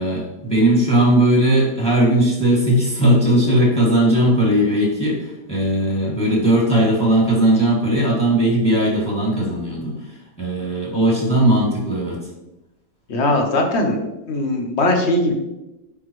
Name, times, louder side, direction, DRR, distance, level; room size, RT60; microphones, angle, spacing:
voice 1, 0.0-12.2, right 1 dB, 5° left, -5 dB, 2.0 m, -18 dB
voice 2, 13.1-14.0 14.3-15.3, left 1 dB, 50° left, 3 dB, 0.9 m, -19 dB
9.5 x 3.9 x 3.1 m, 0.96 s
omnidirectional pair, 2.0 m